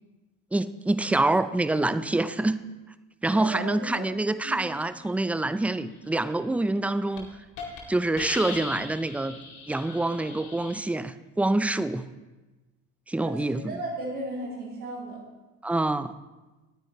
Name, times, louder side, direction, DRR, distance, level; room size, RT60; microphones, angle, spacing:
voice 1, 0.5-2.6 3.2-7.3 7.9-9.4 9.7-12.0 13.1-13.8 15.6-16.1, right 2 dB, 5° right, 13 dB, 0.4 m, -26 dB
voice 2, 3.3-4.0 4.4-4.6 13.2-15.2, right 2 dB, 70° right, -8 dB, 3.4 m, -35 dB
Hiss, 6.6-6.8 7.2-7.3 7.6-7.8 8.2-10.8, left 4 dB, 70° left, 2.4 m, -39 dB
19.0 x 9.2 x 2.9 m, 1.1 s
hypercardioid pair, 60°, 43 cm